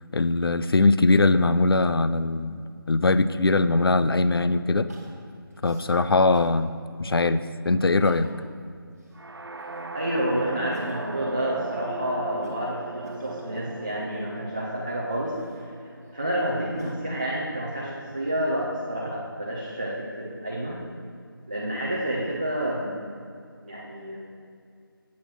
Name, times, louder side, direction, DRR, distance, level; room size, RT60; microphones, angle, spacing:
voice 1, 0.1-4.9 5.6-6.7 7.0-8.3, left 3 dB, 75° left, 12 dB, 0.4 m, -21 dB
Crying sobbing, 4.9-6.6 7.1-7.2 7.8-8.5 8.9-10.0 10.4-14.4 15.1-17.2 17.8-18.6, right 1 dB, 40° right, 1.3 m, -47 dB
sound 1, 9.1-17.0, right 3 dB, 75° right, 0.6 m, -39 dB
voice 2, 9.9-15.7 16.1-20.8 21.5-23.1 23.6-24.2, equal, 20° right, -5 dB, 0.5 m, -29 dB
8.4 x 6.1 x 4.2 m, 2.3 s
figure-of-eight pair, 170°, 12 cm